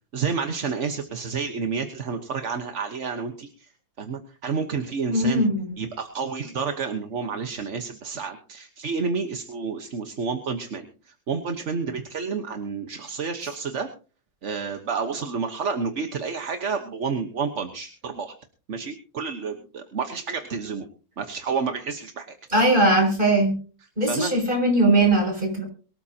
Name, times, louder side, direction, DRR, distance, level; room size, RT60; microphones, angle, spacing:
voice 1, 0.1-3.7 4.0-5.4 5.8-13.9 14.4-18.3 18.7-20.9 21.2-22.4 24.0-24.3, right 5 dB, 45° right, 6 dB, 1.3 m, -30 dB
voice 2, 5.1-5.7 22.5-23.5 24.0-25.6, right 1 dB, 25° right, 2 dB, 7.0 m, -20 dB
23.0 x 13.0 x 2.9 m, 0.37 s
omnidirectional pair, 2.1 m